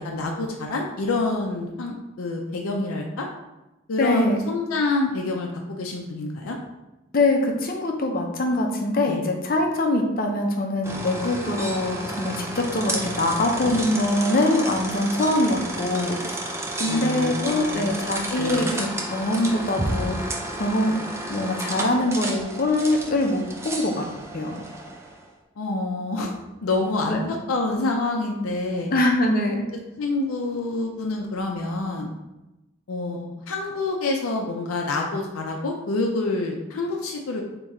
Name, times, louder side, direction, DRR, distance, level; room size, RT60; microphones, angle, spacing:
voice 1, 0.0-3.3 3.9-6.6 9.0-9.2 16.9-17.9 18.4-18.8 25.6-26.3 26.6-28.9 30.0-32.1 32.9-37.4, left 3 dB, 90° left, 1 dB, 0.5 m, -27 dB
voice 2, 4.0-4.4 7.1-16.4 16.8-20.9 21.3-24.0 24.3-24.6 27.1-27.3 28.9-29.7, left 1 dB, 45° left, 2 dB, 0.6 m, -23 dB
sound 1, 10.8-25.2, right 1 dB, 15° right, 0.4 m, -31 dB
3.6 x 2.9 x 4.1 m, 1.0 s
head